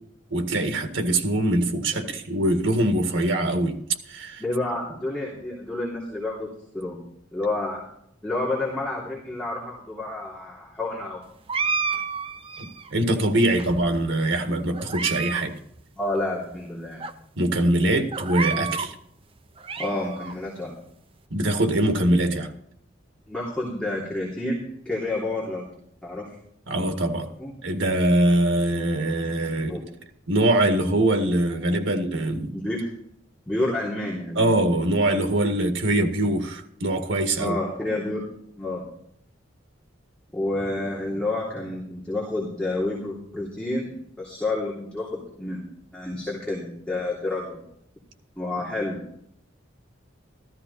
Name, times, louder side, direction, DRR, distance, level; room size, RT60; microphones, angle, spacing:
voice 1, 0.3-3.8 4.1-4.4 12.6-15.5 17.4-18.9 21.3-22.5 26.7-27.3 27.6-29.8 30.3-32.6 34.4-37.6, right 1 dB, 80° right, 1.9 m, -23 dB
voice 2, 4.4-6.5 6.7-7.0 7.3-7.8 8.2-11.2 13.5-13.6 16.0-17.0 19.8-20.7 23.3-25.7 26.0-26.3 27.4-27.5 29.7-29.8 32.5-32.9 33.5-34.6 37.4-38.2 38.6-38.8 40.3-43.9 44.2-45.6 45.9-47.7 48.4-49.0, left 2 dB, 5° left, 3.1 m, -29 dB
sound 1, 11.5-12.9 13.6-14.3 14.7-15.4 15.7-15.8 16.5-16.6 17.0-17.1 18.1-18.9 19.4-20.3, right 5 dB, 30° right, 0.7 m, -30 dB
14.5 x 13.5 x 4.2 m
head